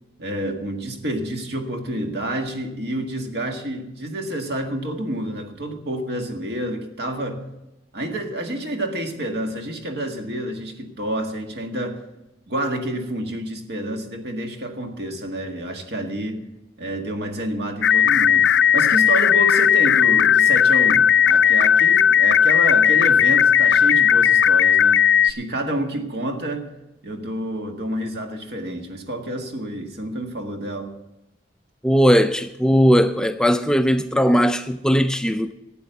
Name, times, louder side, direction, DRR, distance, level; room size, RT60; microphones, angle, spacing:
voice 1, 0.2-7.5 7.9-12.0 12.5-16.4 16.8-26.7 27.0-31.0, right 1 dB, 60° right, 1.8 m, -29 dB
sound 1, 17.8-25.3, left 8 dB, 70° left, 0.4 m, -16 dB
voice 2, 31.8-35.5, equal, 5° left, 0.4 m, -18 dB
12.5 x 8.8 x 6.8 m
head